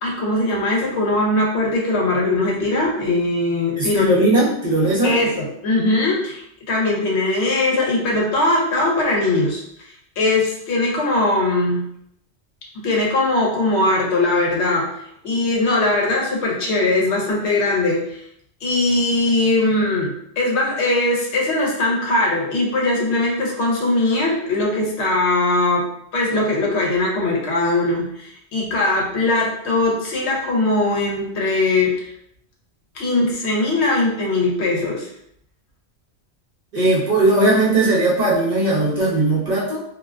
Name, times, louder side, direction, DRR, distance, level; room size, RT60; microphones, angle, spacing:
voice 1, 0.0-4.2 5.0-9.6 10.2-11.9 12.7-18.2 18.6-32.1 32.9-35.1, left 2 dB, 75° left, -2 dB, 0.9 m, -20 dB
voice 2, 3.8-5.2 36.7-39.8, right 2 dB, 45° right, -7 dB, 0.6 m, -18 dB
2.4 x 2.2 x 2.3 m, 0.72 s
omnidirectional pair, 1.2 m